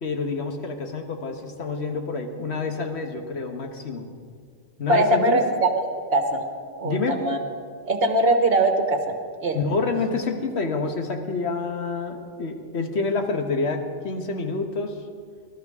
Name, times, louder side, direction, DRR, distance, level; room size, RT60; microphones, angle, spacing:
voice 1, 0.0-4.1 4.8-5.4 6.8-7.2 9.5-15.0, left 4 dB, 65° left, 4 dB, 1.4 m, -28 dB
voice 2, 4.9-5.8 6.1-6.4 6.8-7.4 7.9-9.1 9.4-9.6, right 2 dB, 55° right, 6 dB, 1.3 m, -21 dB
20.5 x 12.0 x 3.6 m, 2.1 s
omnidirectional pair, 1.2 m